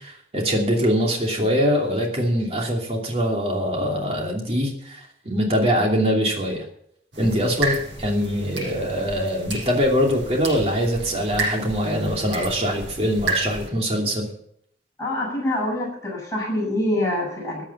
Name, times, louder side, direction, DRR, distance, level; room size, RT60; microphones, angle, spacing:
voice 1, 0.0-6.6 7.2-14.3, equal, 35° right, 1 dB, 2.8 m, -23 dB
sound 1, 7.1-13.7, right 3 dB, 85° right, 7.3 m, -31 dB
voice 2, 15.0-17.6, left 1 dB, 15° left, -4 dB, 7.4 m, -25 dB
14.5 x 8.8 x 7.2 m, 0.69 s
head